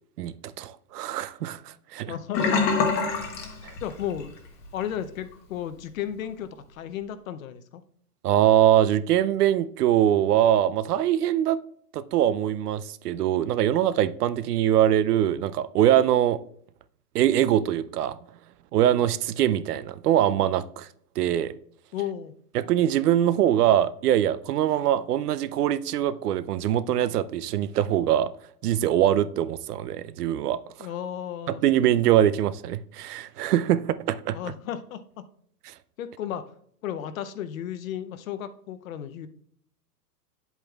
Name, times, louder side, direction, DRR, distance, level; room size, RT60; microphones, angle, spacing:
voice 1, 0.2-1.6 1.9-2.1 3.6-3.7 8.2-11.6 11.9-16.4 17.1-18.2 18.7-20.9 21.2-21.5 22.5-28.3 28.6-30.6 31.5-34.4, right 11 dB, 70° right, 0.6 m, -23 dB
voice 2, 2.1-2.9 3.8-4.3 4.7-7.8 21.9-22.3 30.8-31.6 34.3-35.0 36.0-36.4 36.8-39.3, left 10 dB, 55° left, 0.7 m, -34 dB
Sink (filling or washing), 2.3-4.3 4.6-4.9 5.3-5.4, left 5 dB, 20° left, 0.9 m, -25 dB
8.7 x 8.1 x 2.3 m
hypercardioid pair, 155°, 50 cm